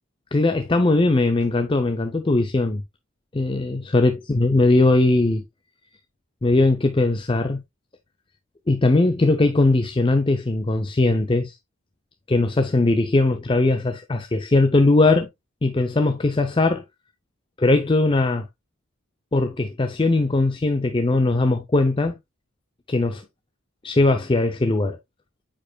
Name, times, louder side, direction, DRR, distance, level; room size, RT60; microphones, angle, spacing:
voice 1, 0.3-2.8 3.3-5.4 6.4-7.6 8.7-11.6 12.3-15.3 15.6-16.8 17.6-18.5 19.3-22.2 22.9-23.2 23.8-25.0, left 2 dB, 25° left, 0.5 m, -20 dB
8.8 x 5.0 x 2.2 m
head